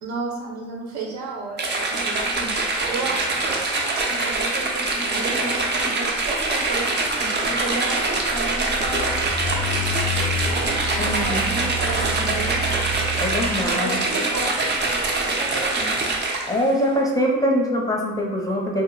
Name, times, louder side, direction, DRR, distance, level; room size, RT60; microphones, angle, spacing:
voice 1, 0.0-12.8 13.6-15.9, right 3 dB, 80° right, -2 dB, 0.9 m, -33 dB
sound 1, 1.6-16.7, right 2 dB, 35° right, 0.5 m, -24 dB
sound 2, 8.6-13.7, equal, 75° left, 0.5 m, -29 dB
voice 2, 11.0-11.7 13.2-14.0 16.5-18.8, equal, 10° left, -2 dB, 0.5 m, -23 dB
2.5 x 2.0 x 3.8 m, 1.1 s
cardioid pair, 90°, 30 cm